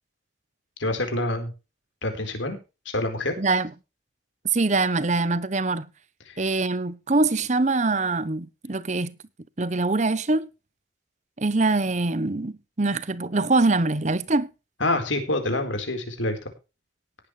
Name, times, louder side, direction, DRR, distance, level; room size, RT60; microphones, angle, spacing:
voice 1, 0.8-1.5 2.0-2.6 2.9-3.3 6.3-6.4 14.8-16.4, left 2 dB, 85° left, 4.2 m, -26 dB
voice 2, 3.4-3.7 4.5-5.9 6.4-9.2 9.6-10.5 11.4-14.5, right 3 dB, 40° right, 0.8 m, -23 dB
18.5 x 8.9 x 3.2 m
head